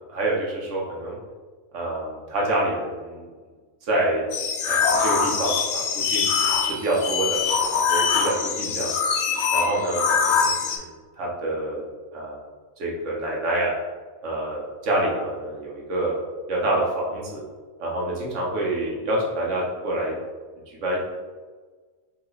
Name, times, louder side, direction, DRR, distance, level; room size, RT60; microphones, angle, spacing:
voice 1, 0.1-1.2 1.7-3.3 3.8-4.2 4.7-6.2 6.6-7.4 7.7-9.0 9.5-11.8 12.1-12.4 12.8-13.7 14.2-16.2 16.5-17.4 17.8-20.1 20.7-21.0, right 1 dB, 65° right, -3 dB, 1.3 m, -27 dB
sound 1, 4.3-10.8, left 6 dB, 65° left, 0.8 m, -23 dB
4.0 x 3.5 x 3.2 m, 1.4 s
omnidirectional pair, 1.4 m